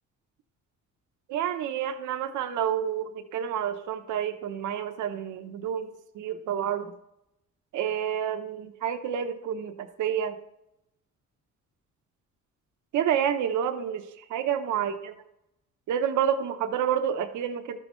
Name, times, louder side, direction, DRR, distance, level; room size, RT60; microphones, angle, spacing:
voice 1, 1.3-6.9 7.7-10.4 12.9-15.1 15.9-17.8, right 9 dB, 75° right, 7 dB, 0.8 m, -29 dB
12.5 x 5.6 x 3.0 m, 0.82 s
cardioid pair, 90°, 30 cm